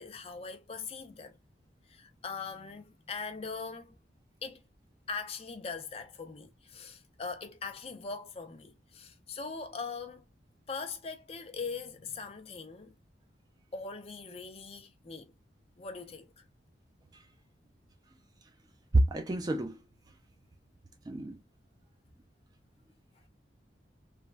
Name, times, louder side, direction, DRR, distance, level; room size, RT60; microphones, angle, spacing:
voice 1, 0.0-1.4 1.9-4.0 4.4-4.6 5.1-10.2 10.7-12.9 13.7-15.3 15.8-16.5, left 4 dB, 35° left, 0.5 m, -41 dB
voice 2, 18.9-19.8 21.1-21.4, right 2 dB, 20° right, 0.3 m, -27 dB
3.2 x 2.1 x 2.4 m
head